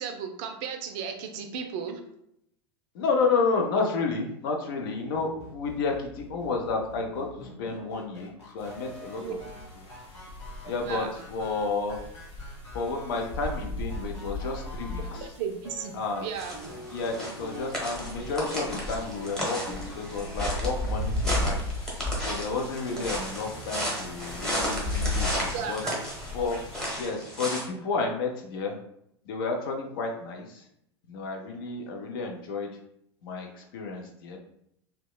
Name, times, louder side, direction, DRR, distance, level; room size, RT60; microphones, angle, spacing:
voice 1, 0.0-2.0 9.2-9.4 10.8-11.2 15.0-15.9 16.2-16.7 22.9-23.0 25.3-25.9, right 7 dB, 45° right, 5 dB, 0.4 m, -35 dB
voice 2, 2.9-9.2 10.7-12.0 12.7-15.3 15.9-16.3 16.9-21.6 22.2-25.3 25.7-25.8 26.3-26.6 27.0-28.8 29.3-30.6 31.1-32.7 33.2-34.4, left 4 dB, 50° left, 2 dB, 0.4 m, -31 dB
sound 1, 5.1-15.3 15.6-16.3 16.6-20.4, left 1 dB, 80° left, 0.7 m, -46 dB
sound 2, 8.6-27.0, left 1 dB, 35° left, 1.1 m, -36 dB
sound 3, 16.3-27.7, equal, 5° left, 0.8 m, -34 dB
2.8 x 2.2 x 2.2 m, 0.76 s
figure-of-eight pair, 85°, 15 cm